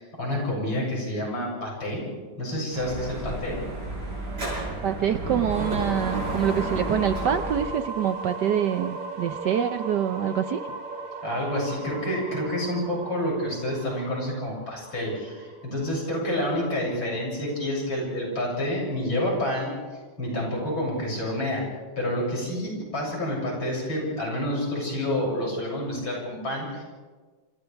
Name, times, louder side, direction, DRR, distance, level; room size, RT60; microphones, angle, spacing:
voice 1, 0.0-2.0 2.4-3.6 11.2-19.7 20.2-21.6 22.0-26.8, left 1 dB, 65° left, -3 dB, 8.3 m, -28 dB
Dog / Motorcycle, 2.7-7.7, right 1 dB, 45° right, 7.9 m, -32 dB
voice 2, 4.8-10.6, right 9 dB, 65° right, 9 dB, 1.2 m, -26 dB
sound 1, 5.5-17.3, right 3 dB, 85° right, 2.5 m, -37 dB
27.5 x 27.0 x 3.5 m, 1.4 s
omnidirectional pair, 2.3 m